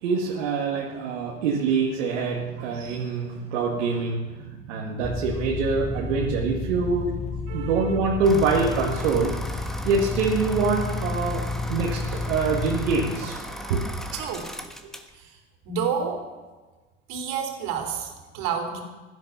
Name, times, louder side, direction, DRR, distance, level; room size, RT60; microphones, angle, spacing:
voice 1, 0.0-7.1 7.5-9.3 9.8-13.8, right 4 dB, 80° right, -3 dB, 2.0 m, -25 dB
sound 1, 5.0-13.1, left 2 dB, 20° left, 1.2 m, -31 dB
voice 2, 7.5-8.0 14.1-14.5 15.1-15.4 15.6-16.2 17.1-18.8, right 6 dB, 65° right, 3 dB, 3.3 m, -30 dB
sound 2, 8.2-15.1, equal, ahead, 1.4 m, -37 dB
16.0 x 10.5 x 5.5 m, 1.2 s
hypercardioid pair, 85°, 36 cm